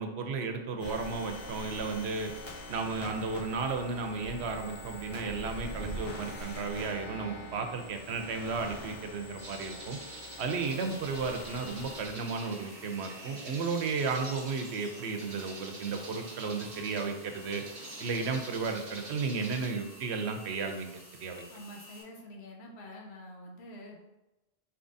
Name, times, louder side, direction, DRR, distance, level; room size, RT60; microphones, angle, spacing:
voice 1, 0.0-2.3 2.7-10.0 10.4-17.6 18.0-20.9 21.2-21.4, right 4 dB, 90° right, 5 dB, 0.9 m, -34 dB
sound 1, 0.8-12.1, left 1 dB, 65° left, 1.4 m, -44 dB
sound 2, 9.4-19.7, right 2 dB, 40° right, 0.8 m, -46 dB
sound 3, 10.7-22.0, right 1 dB, 15° right, 1.0 m, -52 dB
voice 2, 21.5-24.0, left 1 dB, 85° left, 0 dB, 1.0 m, -47 dB
4.4 x 3.6 x 2.6 m, 1.0 s
omnidirectional pair, 1.1 m